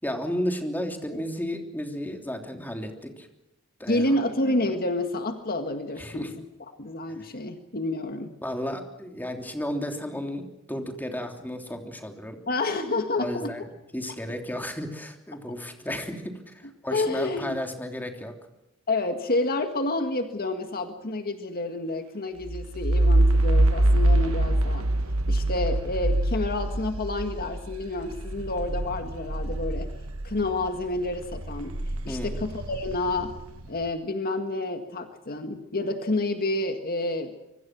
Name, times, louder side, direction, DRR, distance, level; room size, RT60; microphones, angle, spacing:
voice 1, 0.0-3.3 3.8-4.1 6.0-6.3 8.4-12.4 13.2-13.6 13.9-18.3 32.1-32.4, equal, 10° left, 4 dB, 3.2 m, -33 dB
voice 2, 3.9-6.4 6.8-8.4 12.5-13.5 15.9-16.0 16.9-17.6 18.9-24.9 25.3-29.9 30.2-31.8 32.1-33.3 33.7-37.3, left 2 dB, 45° left, 7 dB, 1.9 m, -29 dB
sound 1, 22.5-30.7 31.1-33.7, right 1 dB, 85° right, 1.4 m, -24 dB
25.5 x 24.0 x 6.2 m, 0.92 s
head